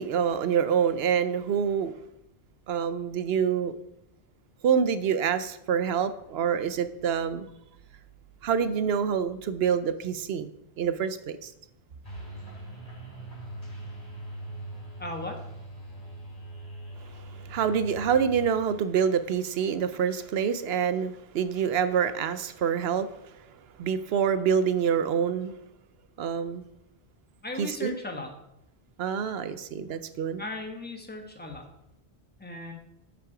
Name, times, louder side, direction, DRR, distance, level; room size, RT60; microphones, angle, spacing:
voice 1, 0.0-1.9 2.7-3.7 4.6-7.5 8.4-10.5 10.8-11.5 17.5-23.1 23.8-25.5 26.2-26.6 27.6-27.9 29.0-30.4, right 7 dB, 70° right, 12 dB, 0.8 m, -26 dB
sound 1, 12.0-18.5, right 1 dB, 45° left, 4.2 m, -41 dB
voice 2, 15.0-15.4 27.4-28.3 30.4-31.6 32.4-32.7, left 2 dB, 10° left, 3 dB, 1.2 m, -36 dB
8.5 x 5.9 x 4.9 m, 0.83 s
omnidirectional pair, 1.1 m